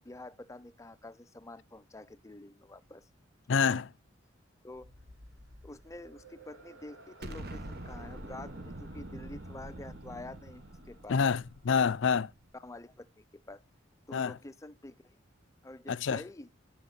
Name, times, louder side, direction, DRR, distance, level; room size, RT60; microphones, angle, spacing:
voice 1, 0.0-3.1 4.6-4.9 5.6-11.2 12.5-13.6 14.1-15.2 15.6-16.5, left 2 dB, 15° left, 0.5 m, -47 dB
voice 2, 3.5-3.9 11.1-12.3 14.1-14.3 15.9-16.2, left 6 dB, 70° left, 0.4 m, -27 dB
sound 1, 4.7-12.1, right 2 dB, 90° right, 4.7 m, -57 dB
Explosion, 7.2-12.4, right 1 dB, 55° right, 1.3 m, -45 dB
9.5 x 7.9 x 4.1 m
head